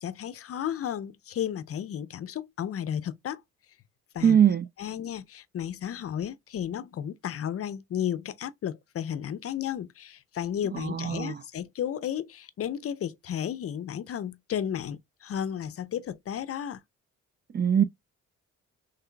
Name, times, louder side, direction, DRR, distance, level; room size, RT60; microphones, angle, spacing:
voice 1, 0.0-3.4 4.1-4.4 4.8-16.8, left 9 dB, 50° left, 0.5 m, -33 dB
voice 2, 4.2-4.7 10.7-11.4 17.5-17.8, right 8 dB, 35° right, 0.4 m, -22 dB
5.5 x 3.3 x 2.2 m
cardioid pair, 90°, 30 cm